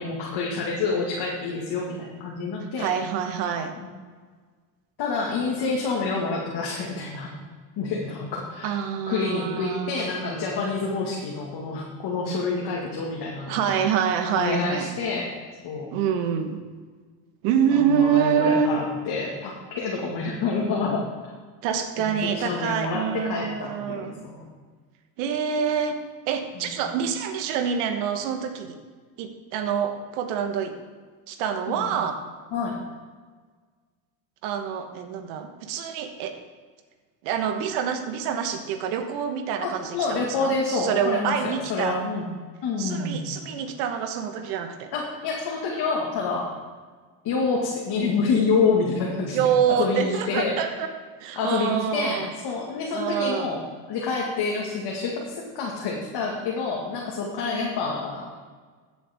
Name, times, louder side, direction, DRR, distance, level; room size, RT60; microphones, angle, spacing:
voice 1, 0.0-2.9 3.8-3.9 5.0-7.3 7.8-8.8 9.1-13.7 14.3-15.3 15.6-15.9 17.7-21.3 22.0-24.5 26.6-26.9 31.7-32.0 32.5-32.8 39.6-42.3 42.6-43.4 44.9-46.5 47.2-50.8 51.4-53.6 53.9-58.4, left 4 dB, 50° left, -2 dB, 2.0 m, -28 dB
voice 2, 2.8-3.7 8.6-10.1 13.5-14.9 15.9-16.6 17.4-18.7 21.6-24.2 25.2-26.0 26.3-28.8 29.2-30.8 31.3-32.2 34.4-36.4 37.2-42.0 42.8-44.9 49.3-50.9 51.2-52.3 52.9-53.5 57.4-57.7, right 7 dB, 75° right, 7 dB, 1.4 m, -26 dB
15.5 x 7.1 x 3.6 m, 1.5 s
supercardioid pair, 80°, 49 cm